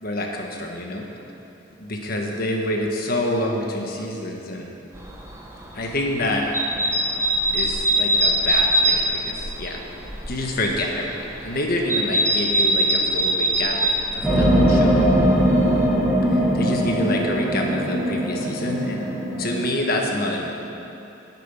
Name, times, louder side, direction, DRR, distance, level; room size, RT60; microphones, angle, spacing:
voice 1, 0.0-1.1 1.8-4.7 5.7-6.5 7.5-9.8 10.3-11.2 11.4-13.8 14.1-15.1 16.3-19.1 19.4-20.5, left 1 dB, 55° left, 1 dB, 1.5 m, -27 dB
sound 1, 4.9-15.8, right 1 dB, 15° right, 1.2 m, -23 dB
sound 2, 14.2-19.7, equal, ahead, 2.1 m, -20 dB
9.5 x 7.6 x 9.3 m, 2.9 s
head